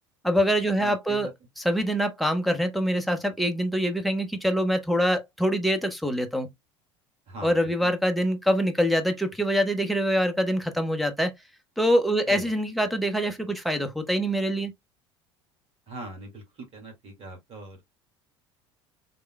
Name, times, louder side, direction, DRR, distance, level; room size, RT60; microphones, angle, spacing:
voice 1, 0.2-1.3 1.6-6.5 7.4-11.3 11.8-14.7, equal, ahead, 1.0 m, -24 dB
voice 2, 0.8-1.3 7.3-7.9 12.3-12.5 15.9-17.8, right 2 dB, 45° right, 2.2 m, -41 dB
4.1 x 3.5 x 2.2 m
hypercardioid pair, 70°, 14 cm